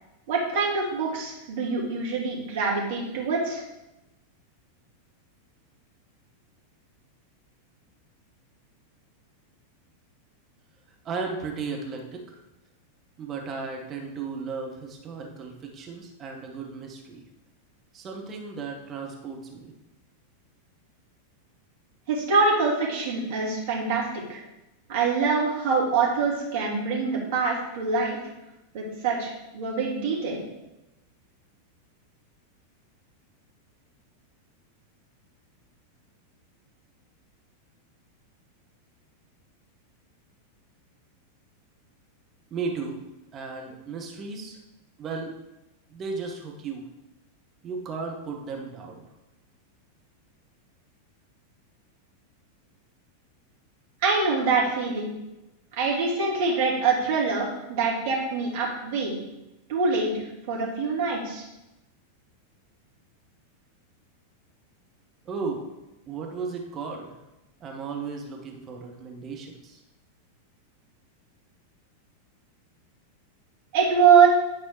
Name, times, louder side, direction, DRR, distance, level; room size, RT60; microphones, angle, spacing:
voice 1, 0.3-3.6 22.1-24.0 24.3-24.4 24.9-28.2 28.7-30.4 54.0-55.1 55.7-59.2 59.7-60.1 60.5-61.4 73.7-74.3, right 5 dB, 50° right, -4 dB, 2.8 m, -24 dB
voice 2, 11.0-12.4 13.2-17.2 17.9-19.7 42.5-43.0 43.3-44.6 45.0-45.3 45.9-46.9 47.6-49.0 65.2-65.8 66.1-67.2 67.6-69.8, right 4 dB, 25° right, 0 dB, 1.5 m, -35 dB
10.5 x 4.2 x 4.8 m, 0.97 s
figure-of-eight pair, 90°, 0 cm